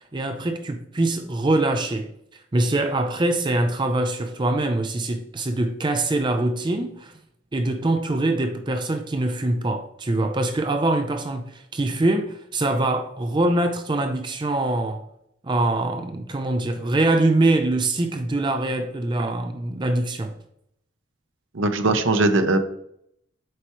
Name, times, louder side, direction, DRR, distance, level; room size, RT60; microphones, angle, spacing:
voice 1, 0.1-7.1 7.5-15.1 15.4-20.3, right 2 dB, 25° right, 0.4 m, -23 dB
voice 2, 21.5-22.6, right 2 dB, 75° right, 0.7 m, -20 dB
7.7 x 4.6 x 3.0 m
head